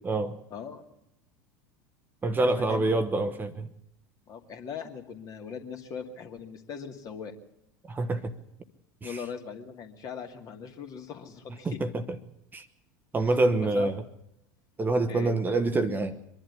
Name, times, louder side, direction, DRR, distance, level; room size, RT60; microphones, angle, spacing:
voice 1, 0.5-0.8 2.4-3.0 4.3-7.3 9.0-11.8 13.2-13.3 13.6-13.9 15.1-15.3, left 6 dB, 35° left, 4 dB, 2.5 m, -40 dB
voice 2, 2.2-3.7 7.9-8.3 9.0-9.2 11.6-12.0 12.5-12.7 13.1-14.0 14.8-16.1, right 2 dB, 20° right, 8 dB, 1.2 m, -26 dB
24.0 x 11.5 x 9.8 m, 0.78 s
figure-of-eight pair, 75°, 10 cm